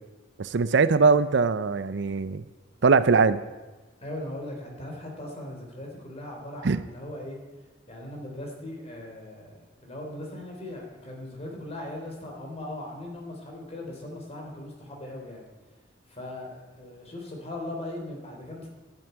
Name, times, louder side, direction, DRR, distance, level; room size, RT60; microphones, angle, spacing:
voice 1, 0.4-2.4 2.8-3.4 6.6-6.8, right 4 dB, 65° right, 14 dB, 0.6 m, -21 dB
voice 2, 4.0-7.4 7.9-15.4 16.1-18.7, left 1 dB, 35° left, 0 dB, 3.4 m, -39 dB
11.5 x 7.2 x 9.6 m, 1.2 s
head